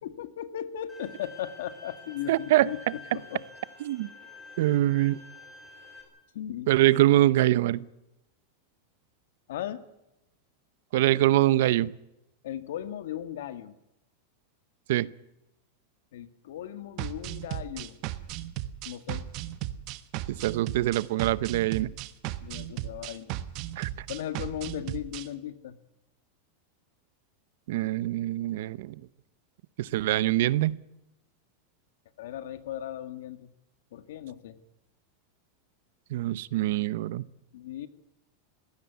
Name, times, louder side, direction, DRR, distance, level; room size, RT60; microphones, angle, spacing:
voice 1, 0.0-3.4 6.3-6.7 9.5-9.8 12.4-13.8 16.1-18.0 18.9-19.3 22.4-23.3 24.1-25.8 32.2-33.5 33.9-34.6 37.5-37.9, left 11 dB, 75° left, 11 dB, 1.9 m, -37 dB
Bowed string instrument, 0.9-6.0, left 3 dB, ahead, 6.3 m, -49 dB
voice 2, 2.3-2.7 3.8-4.1 4.6-5.2 6.7-7.8 10.9-11.9 14.9-15.1 20.4-21.9 23.8-23.9 27.7-28.9 29.8-30.8 36.1-37.2, right 15 dB, 65° right, 19 dB, 0.8 m, -24 dB
sound 1, 17.0-25.3, right 14 dB, 40° right, 1.1 m, -36 dB
20.0 x 16.0 x 9.5 m, 0.90 s
supercardioid pair, 160°, 0 cm